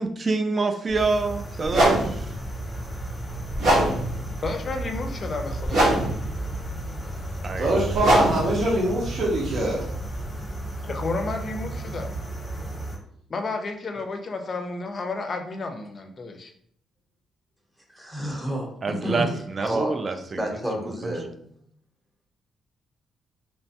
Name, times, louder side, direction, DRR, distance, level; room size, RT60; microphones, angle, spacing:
voice 1, 0.0-2.3 7.4-7.9 18.8-20.4 21.0-21.1, right 3 dB, 35° right, 7 dB, 0.3 m, -27 dB
sound 1, 0.9-1.0 1.6-10.5, right 1 dB, 85° right, 1.2 m, -25 dB
sound 2, 1.0-13.0, right 2 dB, 20° left, 0.8 m, -34 dB
voice 2, 4.4-5.9 10.8-12.1 13.3-16.5, left 3 dB, 40° left, 5 dB, 0.5 m, -31 dB
voice 3, 7.6-9.8, right 1 dB, 60° right, -3 dB, 0.8 m, -23 dB
voice 4, 17.9-20.0 20.3-21.3, equal, 10° right, 1 dB, 0.8 m, -30 dB
3.1 x 2.2 x 2.8 m, 0.66 s
cardioid pair, 95°, 0 cm